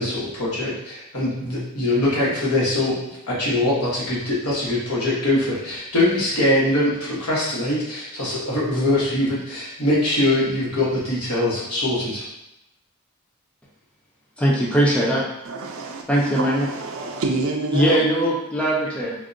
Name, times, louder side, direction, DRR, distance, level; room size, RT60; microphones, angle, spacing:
voice 1, 0.0-3.0 3.3-12.3, left 1 dB, 85° left, -6 dB, 1.1 m, -22 dB
voice 2, 14.4-15.2 16.1-16.7 17.7-19.1, right 1 dB, 5° left, -5 dB, 0.4 m, -20 dB
voice 3, 15.5-18.0, right 3 dB, 65° right, 2 dB, 0.4 m, -28 dB
3.6 x 2.1 x 2.6 m, 0.86 s
head